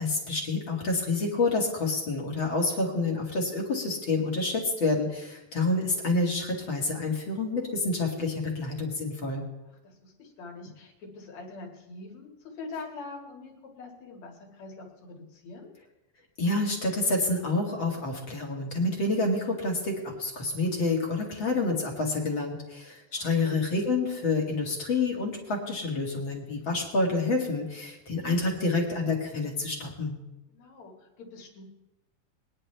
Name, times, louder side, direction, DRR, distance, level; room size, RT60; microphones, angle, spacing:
voice 1, 0.0-9.4 16.4-30.2, left 3 dB, 40° left, -1 dB, 2.5 m, -28 dB
voice 2, 9.8-15.7 23.1-23.7 30.5-31.6, left 3 dB, 55° left, 0 dB, 3.1 m, -44 dB
23.0 x 9.9 x 3.4 m, 0.99 s
omnidirectional pair, 3.9 m